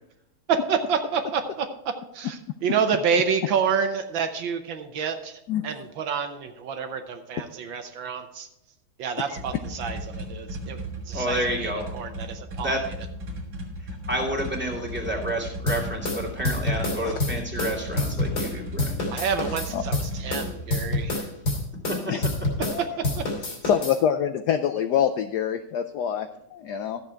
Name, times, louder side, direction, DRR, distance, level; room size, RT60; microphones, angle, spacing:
voice 1, 0.5-1.7 2.1-8.5 9.0-12.8 19.1-21.3 23.1-23.3, right 6 dB, 70° right, 7 dB, 1.5 m, -28 dB
sound 1, 9.3-20.8, equal, 45° right, 2.1 m, -36 dB
voice 2, 11.1-11.8 12.6-12.8 13.8-19.0 21.9-22.0, right 1 dB, 5° right, -2 dB, 2.2 m, -29 dB
sound 2, 15.7-18.5 18.8-22.8 23.0-24.0, left 2 dB, 60° left, 3.4 m, -27 dB
voice 3, 23.6-27.0, left 9 dB, 75° left, 9 dB, 0.9 m, -26 dB
13.0 x 7.5 x 4.6 m, 0.83 s
omnidirectional pair, 2.3 m